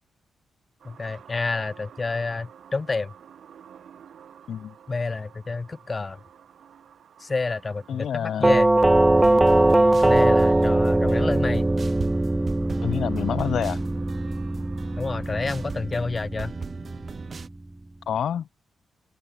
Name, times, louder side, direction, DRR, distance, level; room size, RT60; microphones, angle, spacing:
voice 1, 0.8-3.1 4.9-6.2 7.2-8.7 10.0-11.7 15.0-16.5, left 3 dB, 30° left, 0.6 m, -29 dB
sound 1, 0.8-15.8, right 8 dB, 70° right, 2.8 m, -51 dB
voice 2, 7.9-8.6 12.8-13.8 18.1-18.5, left 9 dB, 70° left, 0.4 m, -27 dB
Doorbell, 8.4-17.3, right 2 dB, 15° right, 0.3 m, -21 dB
sound 2, 9.2-17.5, right 5 dB, 45° right, 2.4 m, -39 dB
open air
cardioid pair, 80°, 0 cm